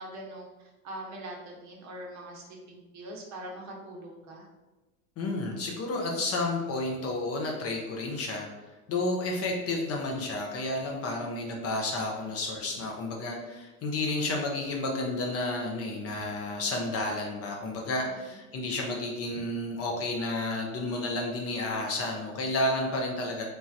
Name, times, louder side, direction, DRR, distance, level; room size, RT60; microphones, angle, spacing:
voice 1, 0.0-4.5, right 1 dB, 40° right, 0 dB, 0.7 m, -42 dB
voice 2, 5.2-8.5 8.9-23.4, left 2 dB, 35° left, 0 dB, 0.5 m, -31 dB
3.2 x 2.2 x 2.6 m, 1.1 s
hypercardioid pair, 80°, 43 cm